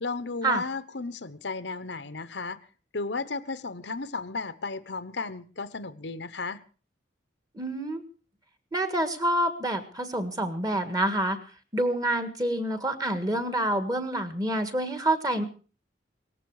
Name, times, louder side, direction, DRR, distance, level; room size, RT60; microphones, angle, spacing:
voice 1, 0.0-2.6 2.9-6.6, left 4 dB, 70° left, 1.0 m, -34 dB
voice 2, 7.5-8.0 8.7-11.4 11.7-15.5, right 1 dB, 20° right, 1.6 m, -27 dB
18.5 x 14.5 x 4.8 m
head